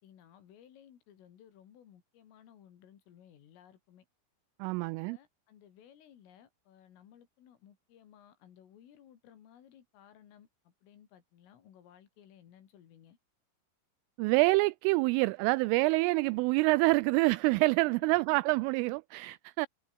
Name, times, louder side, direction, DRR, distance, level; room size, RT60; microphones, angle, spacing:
voice 1, 0.0-4.1 4.8-13.2 17.8-18.4 19.2-19.4, left 10 dB, 75° left, 5.4 m, -58 dB
voice 2, 4.6-5.2 14.2-19.7, right 24 dB, 85° right, 3.0 m, -27 dB
omnidirectional pair, 5.9 m